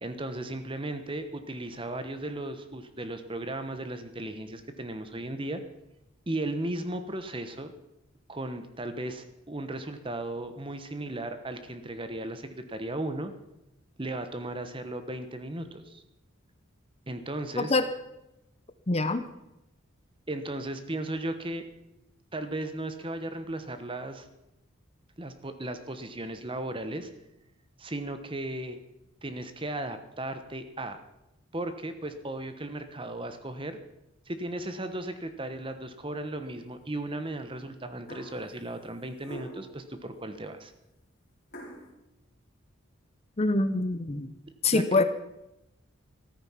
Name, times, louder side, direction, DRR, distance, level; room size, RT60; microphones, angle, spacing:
voice 1, 0.0-5.6 6.3-7.7 8.3-13.3 14.0-16.0 17.1-17.8 20.3-21.6 22.3-24.3 25.2-27.1 27.8-28.8 29.2-31.0 31.5-33.8 34.3-40.7 44.7-44.8, right 1 dB, 25° right, 9 dB, 1.1 m, -36 dB
voice 2, 18.9-19.3 43.4-44.3 44.6-45.0, left 3 dB, 30° left, 11 dB, 0.7 m, -25 dB
sound 1, 38.1-38.5 39.2-39.8 41.5-41.9, equal, 50° left, 4.3 m, -43 dB
14.0 x 13.5 x 5.7 m, 0.91 s
head